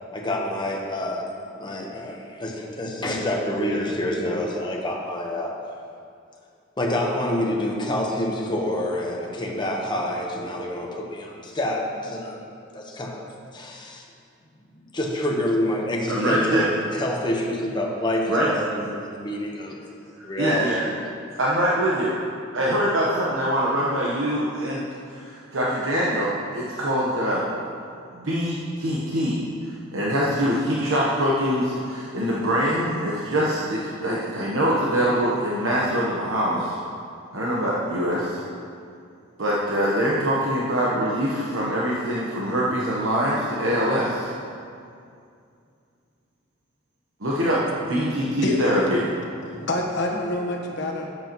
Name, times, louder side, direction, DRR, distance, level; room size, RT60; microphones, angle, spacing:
voice 1, 0.1-1.3 1.6-5.5 6.8-12.4 12.7-13.2 13.5-14.0 14.9-19.7 20.2-20.9, left 1 dB, 25° left, -1 dB, 1.1 m, -27 dB
voice 2, 16.1-16.7 18.3-18.5 20.2-20.9 21.4-22.1 22.5-24.8 25.1-27.5 28.1-29.4 29.6-36.8 37.3-38.4 39.4-44.3 47.2-49.0, equal, 75° right, -6 dB, 1.1 m, -24 dB
voice 3, 48.0-48.6 48.9-51.1, left 1 dB, 65° left, 0 dB, 1.3 m, -28 dB
12.5 x 7.8 x 3.1 m, 2.4 s
head